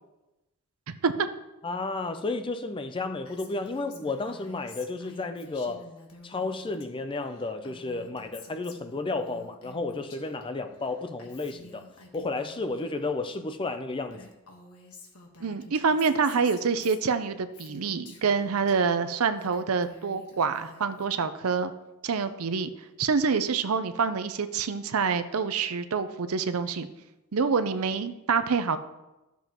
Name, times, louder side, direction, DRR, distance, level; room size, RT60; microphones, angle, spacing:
voice 1, 0.9-1.3 15.4-21.7 22.0-22.7 23.0-26.9 27.3-28.8, right 5 dB, 70° right, 0.6 m, -26 dB
voice 2, 1.6-5.9 6.2-11.9 12.1-14.3, left 3 dB, 25° left, 0.5 m, -32 dB
Female speech woman speaking, 3.3-6.9 7.1-10.4 10.7-13.1 13.7-13.8 14.1-18.8 19.2-21.1, left 3 dB, 75° left, 1.3 m, -50 dB
13.0 x 6.9 x 3.0 m
head